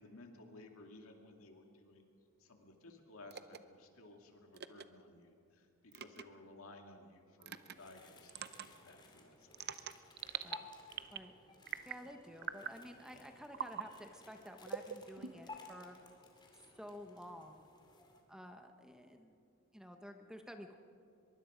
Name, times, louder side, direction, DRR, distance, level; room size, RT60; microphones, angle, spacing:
voice 1, 0.0-2.1 2.4-5.7 5.9-9.9, left 2 dB, 70° left, 3 dB, 2.4 m, -57 dB
sound 1, 3.3-3.6 4.5-4.8 5.9-6.2 7.4-7.7 8.3-8.7 9.5-10.6 10.9-11.3 11.7-12.0 12.4-12.8 13.5-13.9 14.7-15.6, right 8 dB, 45° right, 0.7 m, -43 dB
sound 2, 7.6-18.2, left 3 dB, 20° left, 2.4 m, -57 dB
voice 2, 11.8-16.0 16.6-17.7 18.3-19.3 19.7-20.8, equal, 5° right, 5 dB, 1.0 m, -52 dB
23.5 x 22.5 x 5.1 m, 2.6 s
head